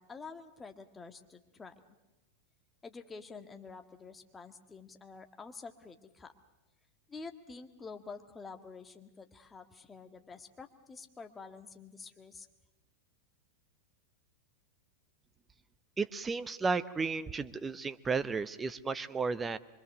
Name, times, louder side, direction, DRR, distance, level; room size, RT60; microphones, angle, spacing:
voice 1, 0.0-1.7 2.8-6.3 7.1-12.5, left 4 dB, 15° left, 6 dB, 1.8 m, -48 dB
voice 2, 16.0-19.6, right 4 dB, 15° right, 14 dB, 0.8 m, -33 dB
24.5 x 24.0 x 6.7 m, 0.97 s
figure-of-eight pair, 90°, 0 cm